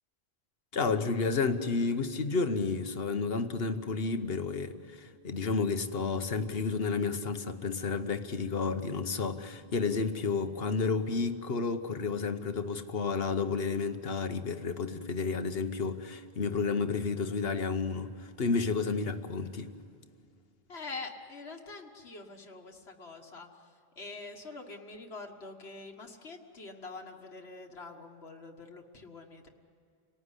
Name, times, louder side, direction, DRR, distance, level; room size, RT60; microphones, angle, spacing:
voice 1, 0.7-19.7, left 4 dB, 70° left, 9 dB, 1.3 m, -31 dB
voice 2, 20.7-23.7 24.0-29.5, left 3 dB, 85° left, 2 dB, 1.9 m, -45 dB
28.5 x 18.5 x 9.9 m, 2.4 s
omnidirectional pair, 1.1 m